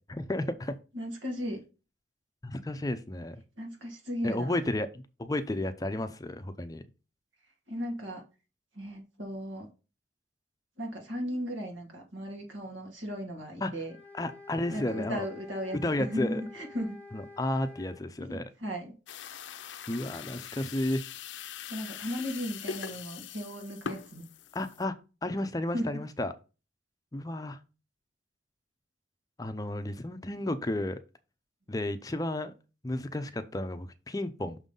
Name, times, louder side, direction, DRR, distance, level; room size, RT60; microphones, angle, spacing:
voice 1, 0.1-0.8 2.4-3.4 4.2-6.8 13.6-13.7 14.1-15.3 15.8-16.4 17.1-18.5 19.9-21.0 24.5-24.9 25.2-26.3 27.1-27.6 29.4-31.0 31.7-32.5 32.8-34.6, left 1 dB, 20° left, 0.5 m, -32 dB
voice 2, 0.9-1.6 3.6-4.6 7.7-8.2 8.8-9.7 10.8-13.9 14.7-17.0 18.2-19.0 21.7-24.2 25.7-25.8, equal, 90° right, 2.6 m, -36 dB
sound 1, 13.8-18.0, left 3 dB, 10° right, 2.2 m, -49 dB
sound 2, 19.1-24.8, left 7 dB, 75° left, 0.5 m, -42 dB
6.2 x 3.8 x 5.3 m
head